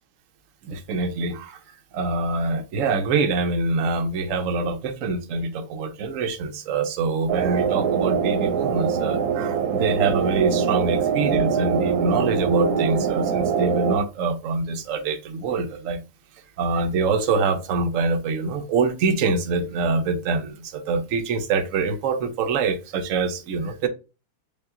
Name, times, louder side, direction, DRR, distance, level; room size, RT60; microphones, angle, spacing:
voice 1, 0.6-1.6 1.9-16.0 16.6-23.9, right 4 dB, 65° right, 1.0 m, -25 dB
sound 1, 7.3-14.0, right 6 dB, 85° right, 1.2 m, -23 dB
5.3 x 2.3 x 3.7 m
omnidirectional pair, 1.6 m